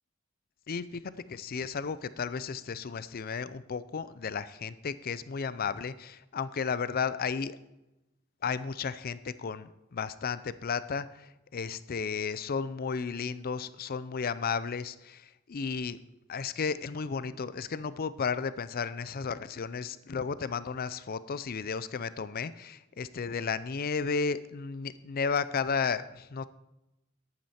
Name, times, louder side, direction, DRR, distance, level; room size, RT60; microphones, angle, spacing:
voice 1, 0.7-1.0 1.3-7.6 8.4-16.0 16.3-26.4, left 5 dB, 45° left, 15 dB, 0.5 m, -33 dB
11.0 x 9.0 x 4.3 m, 0.95 s
head